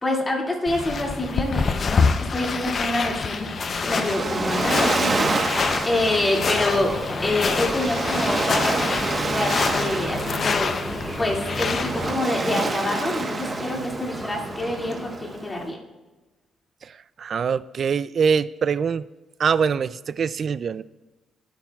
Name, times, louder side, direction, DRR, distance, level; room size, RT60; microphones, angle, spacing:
voice 1, 0.0-3.5 3.9-5.6 5.9-6.9 7.2-15.8, left 1 dB, 25° left, -1 dB, 2.3 m, -26 dB
sound 1, 0.7-12.1, left 5 dB, 45° left, 0.6 m, -26 dB
Waves surf, 3.2-15.6, right 3 dB, 35° right, 1.2 m, -29 dB
sound 2, 5.5-15.6, right 1 dB, 15° right, 1.5 m, -35 dB
voice 2, 16.8-19.0 19.4-20.8, right 6 dB, 50° right, 18 dB, 0.3 m, -24 dB
19.5 x 8.7 x 2.4 m, 1.2 s
cardioid pair, 90°, 0 cm